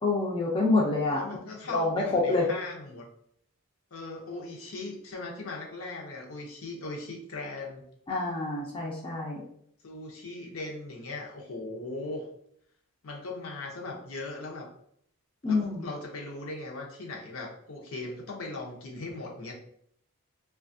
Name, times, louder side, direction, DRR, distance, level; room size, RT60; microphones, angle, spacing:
voice 1, 0.0-1.2 1.7-2.5 8.1-9.4 15.4-15.8, left 3 dB, 25° left, -3 dB, 0.4 m, -27 dB
voice 2, 1.1-3.0 3.9-7.8 9.8-12.3 13.0-14.7 15.4-19.5, left 2 dB, 65° left, -1 dB, 0.6 m, -39 dB
2.7 x 2.3 x 2.5 m, 0.67 s
head